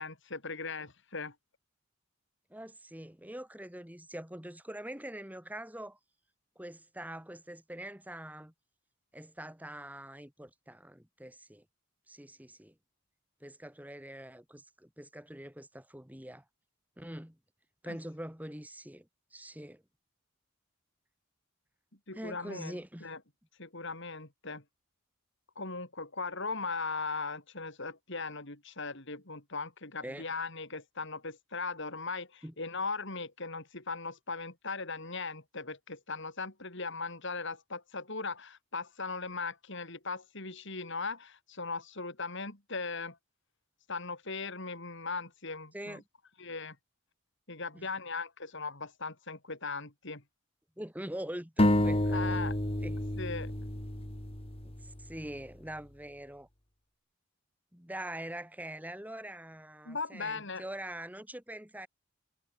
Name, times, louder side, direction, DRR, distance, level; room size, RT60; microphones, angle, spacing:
voice 1, 0.0-1.3 17.9-18.0 22.1-23.2 23.6-24.6 25.6-43.2 43.9-46.0 46.4-46.8 47.5-50.2 52.1-52.6 53.2-53.5 59.8-60.6, left 4 dB, 60° left, 4.7 m, -38 dB
voice 2, 2.5-6.0 6.5-8.5 9.1-11.6 12.1-12.7 13.4-16.4 17.0-17.4 17.8-19.8 22.1-23.1 30.0-30.3 32.4-32.5 45.7-46.0 47.7-47.9 50.8-52.4 52.8-53.1 54.6-56.5 57.7-61.9, right 1 dB, 5° right, 3.2 m, -44 dB
sound 1, 51.6-55.2, left 1 dB, 25° left, 2.3 m, -29 dB
head